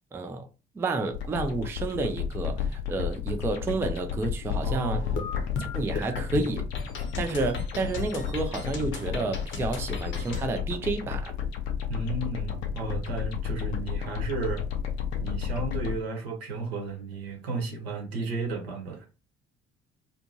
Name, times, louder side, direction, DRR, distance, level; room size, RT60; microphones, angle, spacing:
voice 1, 0.1-0.5 0.8-5.0 5.7-6.7 7.2-11.3, right 3 dB, 10° right, 0.3 m, -30 dB
sound 1, 1.1-16.0, left 8 dB, 75° left, 0.6 m, -32 dB
voice 2, 4.6-5.3 11.9-14.6 15.2-19.1, right 3 dB, 75° right, 0.9 m, -33 dB
sound 2, 5.0-10.5, left 4 dB, 40° left, 0.7 m, -36 dB
2.5 x 2.5 x 2.8 m
figure-of-eight pair, 45°, 32 cm